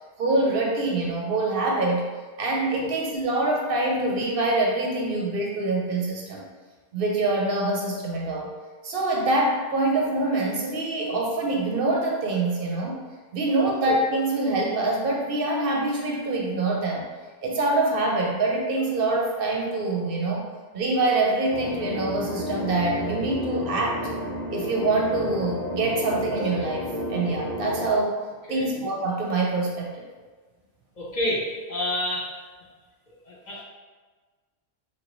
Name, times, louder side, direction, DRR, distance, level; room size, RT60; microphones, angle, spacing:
voice 1, 0.2-2.0 2.4-6.4 6.9-8.5 8.8-13.0 13.3-17.1 17.4-20.5 20.7-24.1 24.5-28.1 28.5-30.0, right 2 dB, 65° right, -1 dB, 0.7 m, -25 dB
sound 1, 21.5-27.9, left 1 dB, 80° left, 0.9 m, -32 dB
voice 2, 31.0-32.3 33.2-33.6, left 1 dB, 50° left, -5 dB, 0.6 m, -29 dB
3.1 x 2.7 x 2.9 m, 1.4 s
omnidirectional pair, 1.1 m